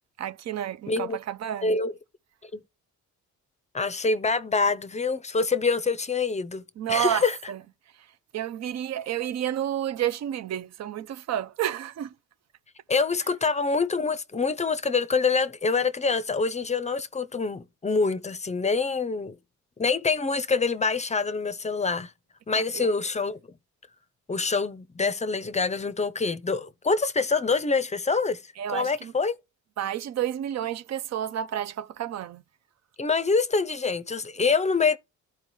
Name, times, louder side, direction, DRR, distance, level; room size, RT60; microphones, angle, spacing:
voice 1, 0.2-1.8 6.8-7.6 8.3-12.1 22.7-22.9 28.6-29.1 29.8-32.4, right 11 dB, 60° right, 0.6 m, -30 dB
voice 2, 0.9-1.2 1.6-2.0 2.5-2.6 3.7-6.6 6.9-7.4 12.9-19.4 19.8-22.1 22.5-23.4 24.3-28.4 28.7-29.4 33.0-35.0, left 4 dB, 25° left, 0.5 m, -25 dB
13.0 x 4.6 x 3.1 m
cardioid pair, 90°, 30 cm